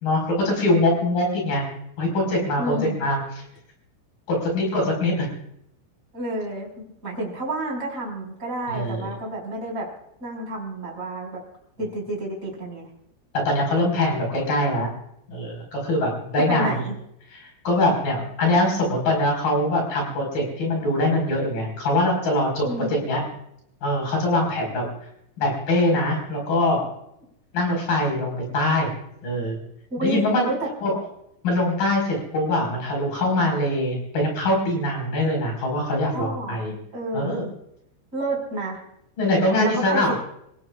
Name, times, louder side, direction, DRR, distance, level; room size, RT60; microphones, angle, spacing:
voice 1, 0.0-1.7 2.0-3.2 4.4-5.3 8.7-9.1 13.4-14.9 15.3-16.8 17.3-23.2 23.8-24.9 25.4-26.9 27.5-28.9 29.2-29.6 30.0-30.5 30.8-31.0 31.4-36.8 37.1-37.5 39.2-40.1, left 1 dB, 45° left, 0 dB, 6.4 m, -23 dB
voice 2, 2.6-3.0 6.1-6.7 7.0-9.9 10.2-11.4 11.8-12.9 16.5-16.9 22.7-23.0 29.9-30.7 36.1-36.6 36.9-37.4 38.1-38.8 39.4-40.1, right 1 dB, 15° right, -2 dB, 5.4 m, -30 dB
29.0 x 16.5 x 2.4 m, 0.77 s
omnidirectional pair, 5.7 m